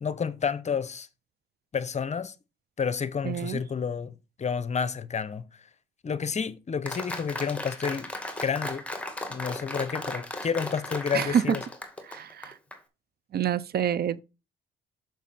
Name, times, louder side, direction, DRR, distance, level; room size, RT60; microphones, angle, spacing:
voice 1, 0.0-1.1 1.7-2.3 2.8-5.5 6.0-8.1 8.4-8.8 9.3-11.6, left 6 dB, 35° left, 0.8 m, -30 dB
voice 2, 3.2-3.6 11.1-11.6 12.1-12.5 13.3-14.2, right 9 dB, 50° right, 0.6 m, -27 dB
Applause, 6.9-12.8, left 1 dB, 5° left, 2.0 m, -36 dB
7.1 x 6.2 x 4.2 m
cardioid pair, 90°, 20 cm